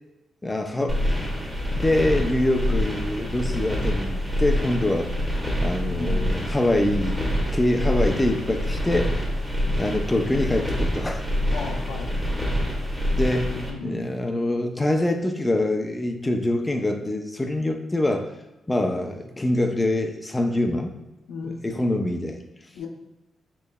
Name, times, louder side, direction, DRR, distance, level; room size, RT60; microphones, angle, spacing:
voice 1, 0.4-1.1 1.7-5.1 5.6-9.3 9.7-11.2 13.1-18.3 18.7-20.9 21.4-22.4, left 1 dB, 15° left, 4 dB, 0.5 m, -25 dB
sound 1, 0.9-13.7, equal, 5° right, 1.3 m, -26 dB
voice 2, 5.7-6.5 11.5-12.2 13.3-14.1 21.3-21.6 22.7-22.9, left 3 dB, 85° left, 1 dB, 0.7 m, -35 dB
6.4 x 3.1 x 2.2 m, 0.99 s
cardioid pair, 85°, 0 cm